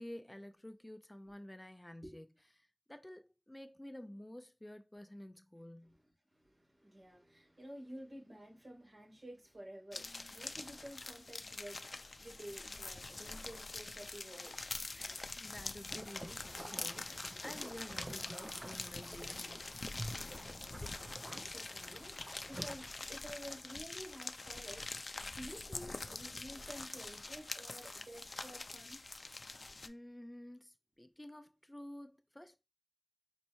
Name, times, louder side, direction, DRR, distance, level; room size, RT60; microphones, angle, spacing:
voice 1, 0.0-2.3 2.9-6.0 14.9-19.7 29.8-32.6, left 1 dB, 20° left, 0.6 m, -51 dB
voice 2, 6.3-11.8 12.2-15.2 20.7-24.9 25.2-29.0, equal, 70° right, 2.9 m, -52 dB
sound 1, 9.9-29.9, left 3 dB, 85° left, 0.4 m, -45 dB
sound 2, 15.9-22.9, right 1 dB, 35° right, 0.4 m, -49 dB
5.4 x 3.0 x 2.7 m
wide cardioid pair, 45°, 0 cm